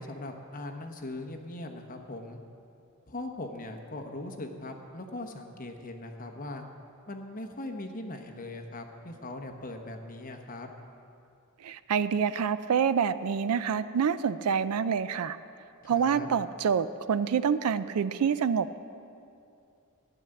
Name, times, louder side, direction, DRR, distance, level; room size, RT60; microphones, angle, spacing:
voice 1, 0.0-2.4 3.1-6.6 7.1-10.7 15.8-16.3, left 2 dB, 40° left, 4 dB, 1.1 m, -40 dB
voice 2, 11.6-15.4 15.8-18.8, right 7 dB, 90° right, 13 dB, 0.4 m, -27 dB
12.0 x 10.0 x 7.8 m, 2.6 s
head